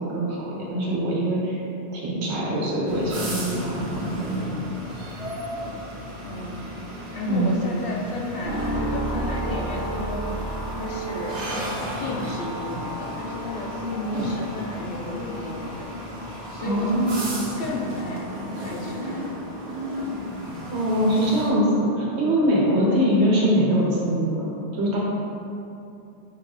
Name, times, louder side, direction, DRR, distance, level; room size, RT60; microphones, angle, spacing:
voice 1, 0.0-1.6 1.9-4.1 7.2-7.6 16.6-17.2 20.7-24.5 24.7-25.0, equal, 90° right, -5 dB, 1.2 m, -23 dB
voice 2, 0.9-1.2 6.2-6.7 7.1-11.3 12.0-15.9 16.5-17.0 17.6-18.3 18.6-19.5 22.7-23.1, left 2 dB, 65° left, -1 dB, 0.7 m, -33 dB
sound 1, 2.9-21.5, equal, 70° right, 1.0 m, -34 dB
sound 2, 8.4-23.5, right 1 dB, 20° right, 0.6 m, -35 dB
5.0 x 2.4 x 3.9 m, 2.7 s
omnidirectional pair, 1.1 m